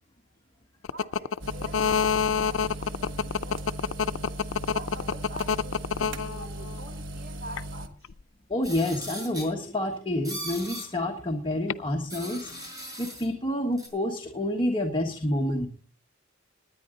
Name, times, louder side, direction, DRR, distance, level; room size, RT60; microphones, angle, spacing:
sound 1, 0.8-6.8 7.6-8.1 11.7-11.8, left 6 dB, 90° left, 0.5 m, -26 dB
voice 1, 0.9-4.3 4.7-8.1, right 1 dB, 55° right, 2 dB, 3.3 m, -45 dB
sound 2, 1.4-7.9, right 1 dB, 75° right, 1.3 m, -38 dB
voice 2, 8.5-12.5 13.0-15.7, left 1 dB, 25° left, 1 dB, 1.4 m, -28 dB
sound 3, 8.6-9.5 10.2-10.9 12.1-13.3 13.8-13.9, right 1 dB, 20° right, 5.4 m, -38 dB
19.5 x 10.0 x 3.8 m, 0.43 s
head